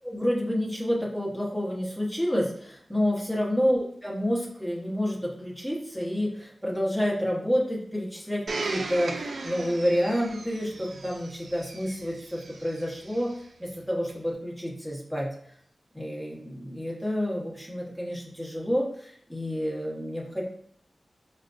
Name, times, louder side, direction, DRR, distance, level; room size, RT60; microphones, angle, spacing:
voice 1, 0.0-13.3 13.6-15.3 15.9-20.4, equal, ahead, -4 dB, 1.2 m, -29 dB
Domestic sounds home sounds, 8.5-13.3 14.1-14.2, right 3 dB, 75° right, 0.3 m, -37 dB
4.9 x 2.2 x 2.5 m, 0.62 s
cardioid pair, 55°, 0 cm